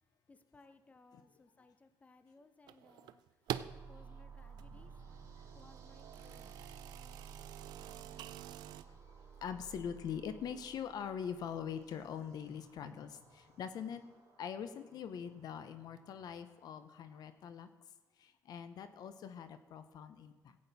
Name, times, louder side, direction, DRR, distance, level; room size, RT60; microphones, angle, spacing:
voice 1, 0.3-3.2 3.9-4.9 5.5-6.7, left 3 dB, 20° left, 11 dB, 0.7 m, -63 dB
sound 1, 2.7-3.8 4.4-8.8, right 12 dB, 80° right, 0.4 m, -46 dB
sound 2, 3.5-17.4, right 6 dB, 50° right, 3.4 m, -56 dB
voice 2, 4.6-5.5 6.3-6.4 8.8-9.0 9.4-14.0 14.4-17.7 18.2-20.6, left 8 dB, 70° left, 11 dB, 0.8 m, -43 dB
15.5 x 8.7 x 4.1 m, 1.3 s
cardioid pair, 100°, 7 cm